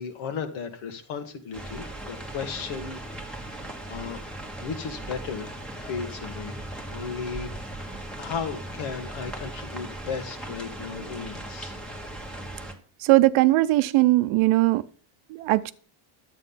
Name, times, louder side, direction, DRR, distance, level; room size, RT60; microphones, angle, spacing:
voice 1, 0.0-3.5 3.9-6.6 6.9-7.5 7.8-11.8, left 6 dB, 70° left, 2.0 m, -35 dB
sound 1, 1.5-12.7, right 1 dB, ahead, 1.3 m, -38 dB
voice 2, 13.0-14.8 15.3-15.7, right 19 dB, 75° right, 0.7 m, -19 dB
11.5 x 8.3 x 5.6 m
cardioid pair, 165°, 48 cm